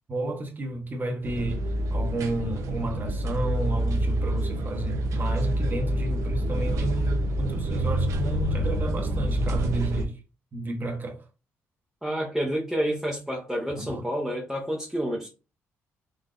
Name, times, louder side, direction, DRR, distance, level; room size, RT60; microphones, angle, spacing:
voice 1, 0.1-1.6 1.9-10.2 10.5-11.2 13.7-14.0, right 1 dB, 35° right, 1.0 m, -32 dB
sound 1, 1.2-10.1, right 1 dB, 70° right, 0.6 m, -27 dB
voice 2, 12.0-15.3, equal, 5° right, 0.9 m, -29 dB
3.8 x 2.6 x 2.4 m
cardioid pair, 80°, 6 cm